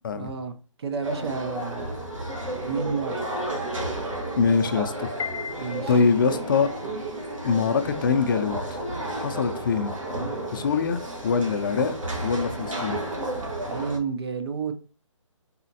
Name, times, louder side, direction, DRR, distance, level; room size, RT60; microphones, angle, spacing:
voice 1, 0.1-1.9 2.7-3.2 5.6-5.9 13.7-14.7, right 5 dB, 50° right, 0.7 m, -30 dB
sound 1, 1.0-14.0, right 1 dB, 80° right, 1.7 m, -32 dB
voice 2, 4.4-5.1 5.9-6.7 7.4-8.8 9.2-9.9 10.5-12.0 12.2-13.0, left 5 dB, 40° left, 0.5 m, -23 dB
Piano, 5.2-6.5, left 7 dB, 65° left, 0.9 m, -35 dB
4.2 x 3.7 x 2.8 m
figure-of-eight pair, 145°, 16 cm